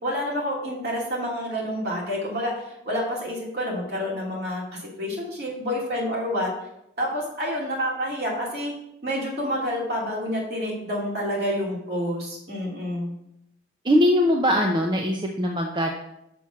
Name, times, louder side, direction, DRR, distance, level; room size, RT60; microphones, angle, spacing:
voice 1, 0.0-6.5 7.0-8.7 9.0-13.1, equal, 55° right, -3 dB, 2.8 m, -28 dB
voice 2, 13.8-15.9, equal, 25° right, 2 dB, 0.6 m, -21 dB
6.2 x 6.0 x 5.7 m, 0.81 s
head